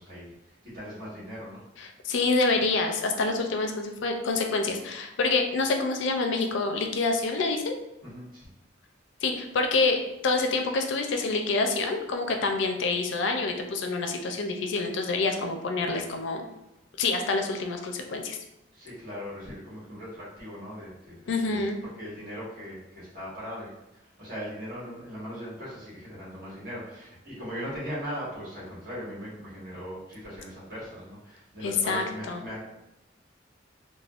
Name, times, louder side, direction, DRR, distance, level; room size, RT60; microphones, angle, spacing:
voice 1, 0.0-1.6 8.0-8.5 18.7-32.6, equal, 50° right, -8 dB, 1.4 m, -39 dB
voice 2, 1.8-7.8 9.2-10.0 10.2-16.4 17.0-18.4 21.3-21.8 31.6-32.4, left 3 dB, 70° left, 4 dB, 0.4 m, -27 dB
3.4 x 2.1 x 2.4 m, 0.92 s
head